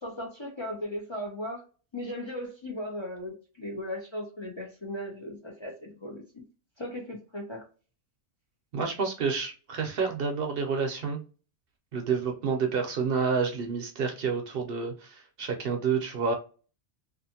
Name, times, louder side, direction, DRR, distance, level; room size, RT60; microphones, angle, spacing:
voice 1, 0.0-1.6 1.9-6.4 6.8-7.7, left 1 dB, 30° left, -1 dB, 0.6 m, -37 dB
voice 2, 8.7-11.2 11.9-16.3, right 5 dB, 65° right, 4 dB, 0.7 m, -29 dB
2.5 x 2.4 x 2.7 m, 0.35 s
omnidirectional pair, 1.2 m